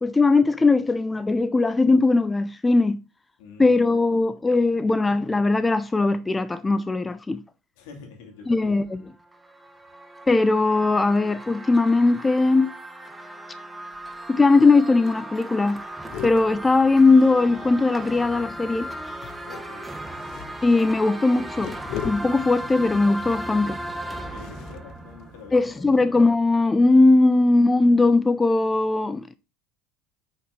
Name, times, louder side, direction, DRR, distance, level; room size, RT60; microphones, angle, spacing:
voice 1, 0.0-3.0 3.6-7.4 8.5-9.0 10.3-12.7 14.3-15.8 16.2-18.9 20.6-21.8 22.0-23.8 25.5-29.3, left 3 dB, 15° left, 0.4 m, -19 dB
voice 2, 3.4-4.2 7.8-9.1 19.4-19.9 24.2-25.9, left 5 dB, 75° left, 2.6 m, -46 dB
sound 1, 9.1-26.0, right 1 dB, 10° right, 1.0 m, -37 dB
sound 2, 13.9-14.4 14.7-14.8 15.1-15.3 15.6-18.0 19.1-26.0, left 11 dB, 55° left, 0.6 m, -41 dB
5.9 x 5.5 x 3.8 m
supercardioid pair, 105°, 0 cm